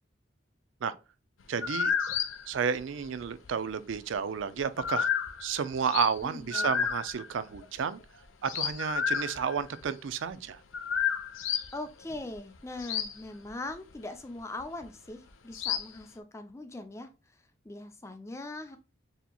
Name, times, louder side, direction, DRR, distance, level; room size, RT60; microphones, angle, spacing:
voice 1, 1.5-2.2 2.5-5.1 5.4-8.0 8.4-10.6, right 6 dB, 80° right, 0.4 m, -31 dB
sound 1, 1.6-3.5 3.9-6.2 6.5-9.8 10.3-10.4 10.7-11.7 12.1-13.2 13.5-13.9 14.6-14.9 15.5-16.0, left 7 dB, 90° left, 0.6 m, -31 dB
voice 2, 6.2-6.7 11.7-18.8, left 2 dB, 15° left, 0.4 m, -41 dB
6.7 x 2.8 x 2.2 m
head